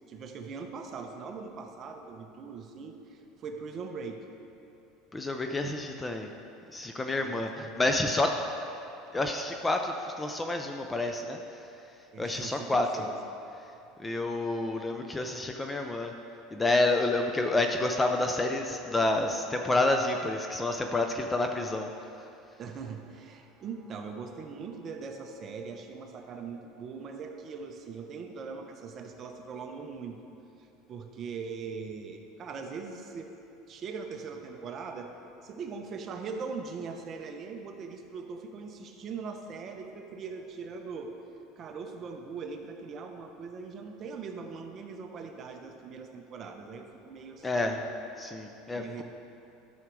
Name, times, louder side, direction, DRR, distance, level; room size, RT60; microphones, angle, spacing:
voice 1, 0.1-4.2 7.2-7.7 12.1-13.2 13.7-13.9 22.6-30.2 30.6-33.3 33.7-41.1 41.6-47.9 48.4-48.5 48.8-49.0, right 5 dB, 35° right, 4 dB, 0.8 m, -41 dB
voice 2, 5.1-6.3 6.7-8.3 9.1-11.7 12.2-13.0 14.0-16.1 16.5-21.9 47.4-47.8 48.2-48.8, left 2 dB, 10° left, 4 dB, 0.5 m, -29 dB
12.0 x 6.3 x 4.7 m, 2.9 s
cardioid pair, 150°, 0 cm